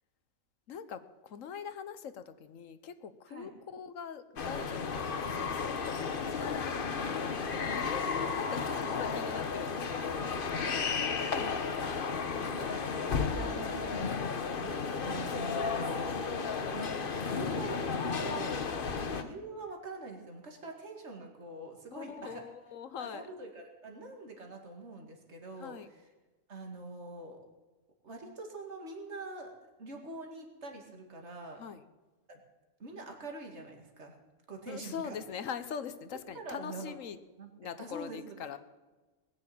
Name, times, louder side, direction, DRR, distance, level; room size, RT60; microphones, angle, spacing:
voice 1, 0.7-6.7 7.7-8.1 8.3-10.3 10.6-10.9 11.3-11.6 18.8-19.0 21.9-23.3 25.6-25.9 31.6-31.8 34.7-37.2 37.6-38.6, left 7 dB, 75° left, 12 dB, 1.2 m, -42 dB
sound 1, 4.4-19.2, left 5 dB, 45° left, 1.1 m, -33 dB
voice 2, 7.0-7.4 10.6-11.0 12.4-14.0 14.5-16.2 16.7-18.7 19.0-22.4 23.0-26.1 26.5-27.4 28.0-29.5 29.8-31.6 32.3-32.4 32.8-34.2 34.5-35.2 36.3-37.0 37.4-38.6, right 2 dB, 55° right, 2 dB, 2.4 m, -44 dB
20.0 x 6.9 x 8.7 m, 1.2 s
omnidirectional pair, 1.4 m